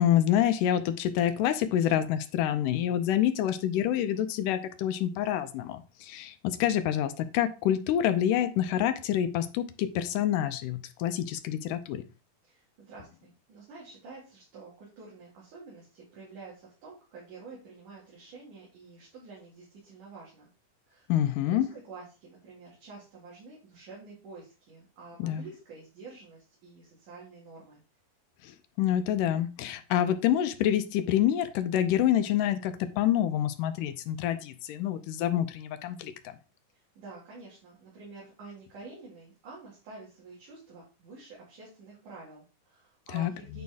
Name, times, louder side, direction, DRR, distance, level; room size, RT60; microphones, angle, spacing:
voice 1, 0.0-12.0 21.1-21.7 25.2-25.5 28.4-36.3 43.1-43.3, left 11 dB, 80° left, 9 dB, 2.2 m, -27 dB
voice 2, 12.4-20.5 20.9-21.1 21.5-27.8 37.0-43.6, right 4 dB, 65° right, -5 dB, 3.7 m, -48 dB
9.4 x 4.4 x 3.5 m, 0.32 s
omnidirectional pair, 4.0 m